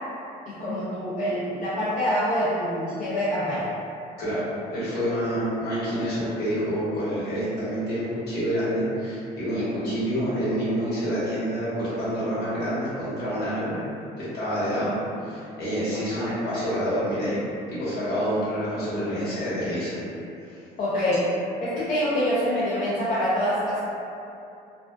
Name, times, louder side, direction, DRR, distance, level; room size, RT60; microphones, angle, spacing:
voice 1, 0.5-3.7 16.1-16.3 20.8-21.2 21.6-23.9, equal, 50° left, -11 dB, 0.6 m, -25 dB
voice 2, 4.7-13.8 14.2-15.0 15.2-17.4 17.7-20.0 20.5-20.6, equal, 75° left, -11 dB, 1.2 m, -27 dB
2.4 x 2.3 x 2.2 m, 2.6 s
cardioid pair, 110°, 17 cm